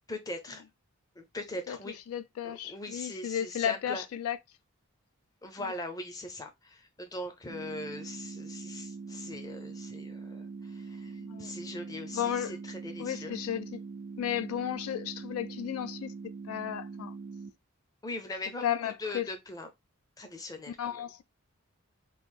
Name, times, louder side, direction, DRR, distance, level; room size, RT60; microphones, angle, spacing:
voice 1, 0.1-0.6 1.1-2.0 2.4-4.0 5.4-13.4 18.0-19.7 20.2-21.0, left 2 dB, 15° left, 0.5 m, -41 dB
voice 2, 2.1-4.4 11.2-11.5 12.1-12.5 13.0-13.8 14.2-16.1 16.5-17.1 18.6-19.3 20.8-21.2, left 9 dB, 75° left, 0.3 m, -33 dB
sound 1, 7.5-17.5, right 4 dB, 70° right, 0.5 m, -43 dB
3.0 x 2.5 x 3.5 m
head